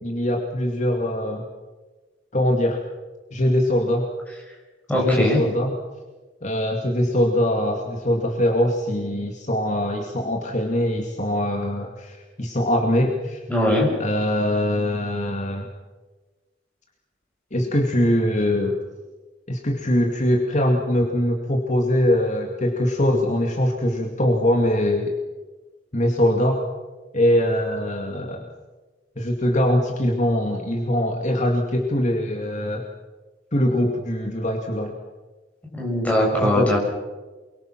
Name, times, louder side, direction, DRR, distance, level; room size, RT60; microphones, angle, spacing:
voice 1, 0.0-1.4 2.3-2.8 3.3-4.1 5.0-5.8 6.4-13.4 14.0-15.7 17.5-18.8 19.5-25.1 25.9-26.6 27.1-28.5 29.2-32.9 33.5-35.0 36.4-36.8, left 1 dB, 40° left, 1 dB, 2.3 m, -22 dB
voice 2, 4.9-5.4 13.5-13.9 35.7-36.8, left 1 dB, 10° left, -2 dB, 7.1 m, -20 dB
28.5 x 23.0 x 6.1 m, 1.3 s
head